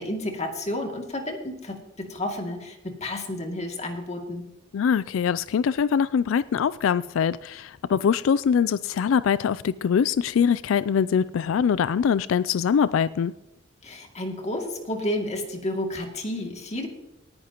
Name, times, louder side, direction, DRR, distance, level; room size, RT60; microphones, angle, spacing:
voice 1, 0.0-1.8 2.1-4.4 13.8-16.9, left 1 dB, 35° left, 2 dB, 2.4 m, -31 dB
voice 2, 4.7-13.3, left 7 dB, 90° left, 17 dB, 0.3 m, -23 dB
18.5 x 10.5 x 3.0 m, 0.96 s
head